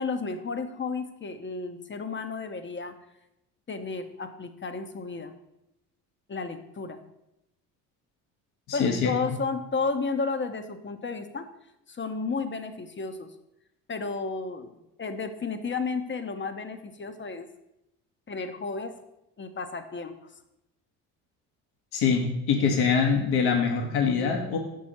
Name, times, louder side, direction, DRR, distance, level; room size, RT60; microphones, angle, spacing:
voice 1, 0.0-2.9 3.7-5.3 6.3-7.0 8.7-11.4 11.9-13.3 13.9-14.7 15.0-17.5 18.3-18.9 19.4-20.3, left 4 dB, 25° left, 8 dB, 1.0 m, -32 dB
voice 2, 8.7-9.1 21.9-24.6, left 5 dB, 60° left, 2 dB, 1.3 m, -24 dB
6.1 x 4.7 x 5.9 m, 0.85 s
hypercardioid pair, 55°, 43 cm